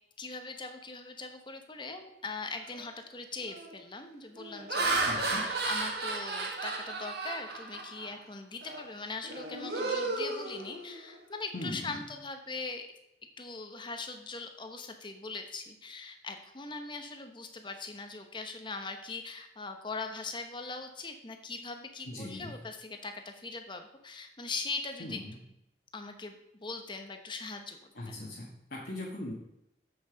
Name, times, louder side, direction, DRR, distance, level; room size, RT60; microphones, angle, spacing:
voice 1, 0.2-12.9 13.4-25.5 25.9-28.2, left 3 dB, 25° left, 6 dB, 1.0 m, -41 dB
Laughter, 2.6-2.9 3.4-3.7 4.4-8.2 8.6-8.9 9.2-11.2, right 3 dB, 60° right, 1.7 m, -33 dB
voice 2, 5.0-5.4 11.5-12.0 22.0-22.6 25.0-25.4 27.9-29.3, left 1 dB, 55° left, -4 dB, 1.6 m, -40 dB
7.8 x 6.6 x 5.1 m, 0.83 s
head